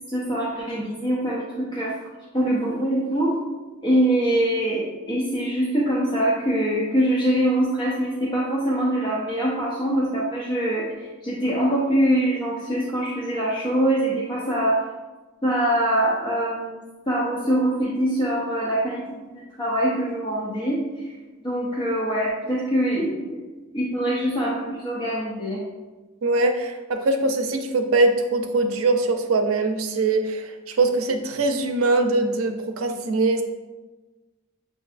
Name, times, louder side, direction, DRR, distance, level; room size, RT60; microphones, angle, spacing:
voice 1, 0.1-1.9 2.3-3.4 3.8-14.8 15.4-16.8 17.1-19.0 19.3-21.1 21.4-23.4 23.7-25.6, right 1 dB, 20° left, -6 dB, 0.6 m, -23 dB
voice 2, 26.2-33.4, right 2 dB, 85° right, 6 dB, 0.5 m, -22 dB
7.0 x 2.6 x 2.4 m, 1.2 s
head